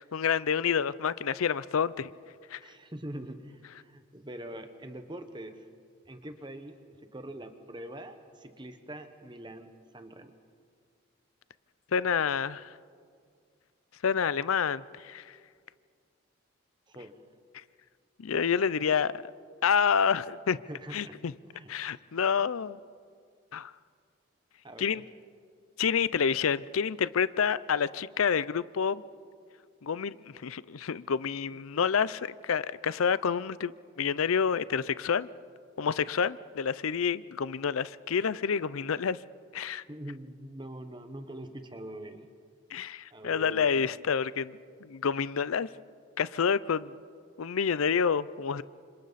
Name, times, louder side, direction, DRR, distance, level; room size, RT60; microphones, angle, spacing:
voice 1, 0.0-2.1 2.5-2.6 11.9-12.7 14.0-15.2 18.2-19.1 19.6-20.6 20.9-21.3 21.7-22.8 23.5-23.7 24.8-25.0 25.8-29.0 29.8-30.2 30.4-33.7 34.0-35.3 35.8-39.2 39.5-39.8 42.7-44.5 44.8-45.7 46.2-46.9 47.4-48.6, left 6 dB, 90° left, 18 dB, 0.5 m, -28 dB
voice 2, 2.6-5.7 6.1-6.8 7.0-10.3 16.9-17.2 20.7-21.2 21.4-21.7 22.4-22.5 24.6-25.0 39.9-42.3 43.1-43.9, right 1 dB, 20° right, 8 dB, 1.2 m, -43 dB
29.5 x 26.5 x 4.1 m, 2.1 s
head